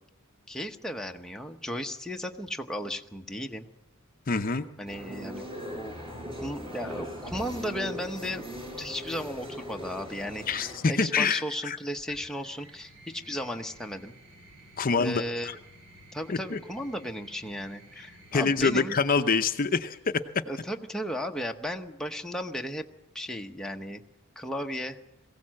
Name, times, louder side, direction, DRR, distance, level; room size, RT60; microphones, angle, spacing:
voice 1, 0.5-3.7 4.8-5.4 5.7-6.0 6.4-14.1 15.0-15.6 16.1-19.0 20.4-22.9 23.1-24.0 24.4-25.0, equal, 5° left, 3 dB, 0.9 m, -35 dB
voice 2, 4.3-4.7 10.5-11.8 14.8-15.6 16.3-16.6 18.3-20.2, left 4 dB, 40° left, 8 dB, 0.7 m, -26 dB
sound 1, 4.9-10.8, equal, 25° right, 5.7 m, -40 dB
sound 2, 12.0-20.4 21.6-22.2, right 1 dB, 55° right, 4.1 m, -54 dB
22.0 x 16.5 x 7.6 m, 0.87 s
head